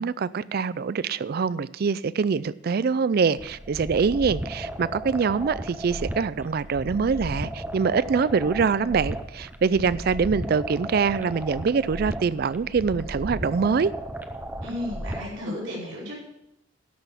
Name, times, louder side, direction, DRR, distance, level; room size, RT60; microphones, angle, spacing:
voice 1, 0.0-13.9, right 5 dB, 50° right, 0.4 m, -24 dB
sound 1, 3.4-15.4, right 1 dB, 10° right, 0.7 m, -35 dB
voice 2, 14.6-16.2, left 1 dB, 70° right, 5.2 m, -33 dB
12.0 x 6.2 x 7.1 m
head